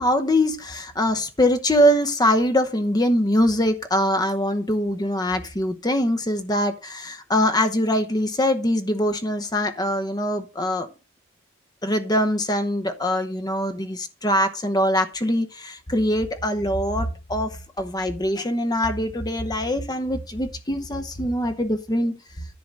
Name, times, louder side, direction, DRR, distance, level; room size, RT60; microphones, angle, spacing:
voice 1, 0.0-10.9 11.8-22.2, equal, 20° left, 0.9 m, -23 dB
10.5 x 3.9 x 6.2 m
head